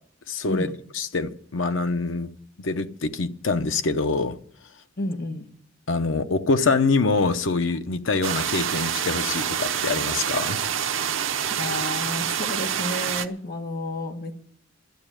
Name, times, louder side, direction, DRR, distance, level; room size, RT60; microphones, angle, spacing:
voice 1, 0.3-0.7 0.9-2.3 2.6-4.4 5.9-10.7, left 3 dB, 85° left, 0.8 m, -25 dB
voice 2, 5.0-5.5 11.5-14.3, left 2 dB, 55° left, 1.5 m, -31 dB
sound 1, 8.2-13.3, right 8 dB, 90° right, 0.8 m, -27 dB
11.5 x 8.9 x 8.9 m
head